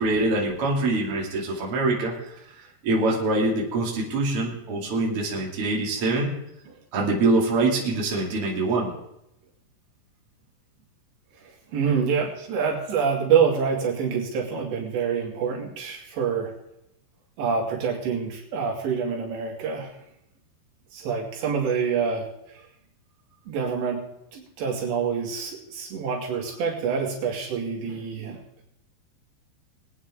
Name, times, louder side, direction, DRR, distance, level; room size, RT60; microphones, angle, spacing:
voice 1, 0.0-2.1 2.6-6.4 6.9-8.9, right 2 dB, 35° right, -3 dB, 3.2 m, -24 dB
voice 2, 11.4-16.5 17.4-19.9 20.9-22.3 23.5-24.0 24.3-28.4, right 6 dB, 75° right, -1 dB, 4.7 m, -26 dB
23.0 x 9.3 x 3.7 m, 0.81 s
omnidirectional pair, 5.1 m